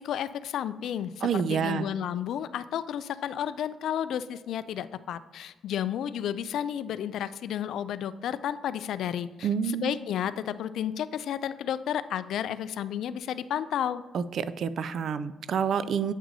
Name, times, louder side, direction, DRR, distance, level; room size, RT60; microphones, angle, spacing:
voice 1, 0.0-14.0, left 9 dB, 75° left, 14 dB, 0.3 m, -32 dB
voice 2, 1.2-1.9 9.4-10.0 14.1-16.1, right 7 dB, 60° right, 14 dB, 0.3 m, -28 dB
8.3 x 5.9 x 2.8 m, 1.3 s
cardioid pair, 90°, 0 cm